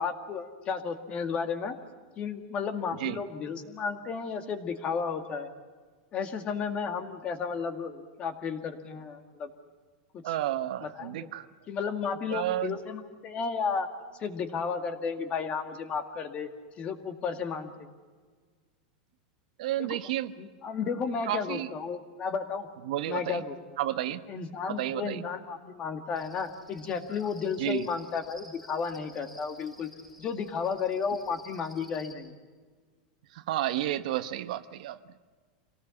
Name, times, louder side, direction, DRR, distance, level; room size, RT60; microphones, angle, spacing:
voice 1, 0.0-1.8 2.2-5.5 6.1-9.5 10.1-10.4 10.8-11.3 11.7-13.9 14.2-16.5 16.8-17.9 19.8-20.0 20.4-22.7 23.1-23.8 24.1-29.9 30.2-32.3, left 5 dB, 25° left, 7 dB, 2.0 m, -33 dB
voice 2, 10.2-11.5 12.3-12.7 19.6-20.3 21.3-21.7 22.9-23.4 23.8-24.2 24.7-25.2 27.6-27.9 33.5-35.0, right 13 dB, 65° right, 11 dB, 1.1 m, -31 dB
Cricket, 26.2-32.1, left 1 dB, 5° left, 5.0 m, -54 dB
26.5 x 18.5 x 7.1 m, 1.5 s
supercardioid pair, 155°, 4 cm